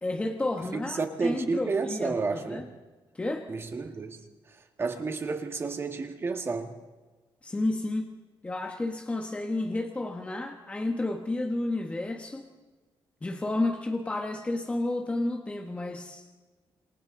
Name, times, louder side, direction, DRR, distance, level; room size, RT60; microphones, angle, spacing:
voice 1, 0.0-2.7 3.1-3.5 7.4-8.1 8.4-12.5 13.2-16.2, left 2 dB, 15° left, 3 dB, 1.3 m, -31 dB
voice 2, 0.7-2.8 3.5-6.8, right 4 dB, 30° right, 5 dB, 1.8 m, -31 dB
27.5 x 27.5 x 3.9 m, 1.3 s
wide cardioid pair, 170°, 9 cm